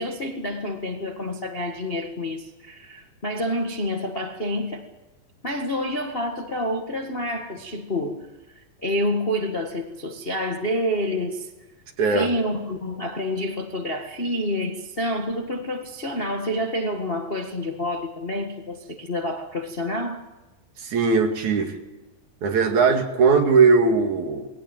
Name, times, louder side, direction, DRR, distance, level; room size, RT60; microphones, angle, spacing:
voice 1, 0.0-4.9 5.4-8.3 8.8-11.5 12.0-20.2, left 1 dB, 30° left, 3 dB, 1.0 m, -28 dB
voice 2, 12.0-12.3 20.8-21.8 22.4-24.5, right 4 dB, 60° right, 4 dB, 3.5 m, -19 dB
21.5 x 17.5 x 9.2 m, 1.1 s
omnidirectional pair, 3.9 m